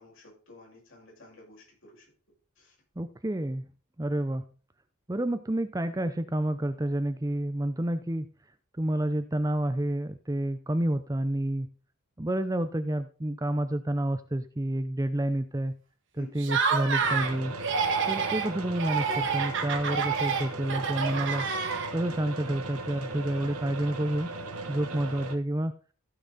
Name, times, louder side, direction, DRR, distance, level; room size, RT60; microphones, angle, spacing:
voice 1, 0.0-2.0 2.6-2.7 16.1-16.5, left 1 dB, 60° left, -3 dB, 6.3 m, -52 dB
voice 2, 3.0-3.6 4.0-4.5 5.1-8.3 8.8-11.7 12.2-15.7 16.2-17.5 18.0-21.5 21.9-24.3 24.7-25.7, right 1 dB, 15° right, 10 dB, 0.5 m, -29 dB
Laughter, 16.4-17.3 17.6-18.5 18.8-22.1, right 5 dB, 55° right, 1.7 m, -28 dB
sound 1, 17.0-25.4, right 2 dB, 85° right, 1.4 m, -38 dB
15.5 x 5.9 x 4.1 m, 0.37 s
head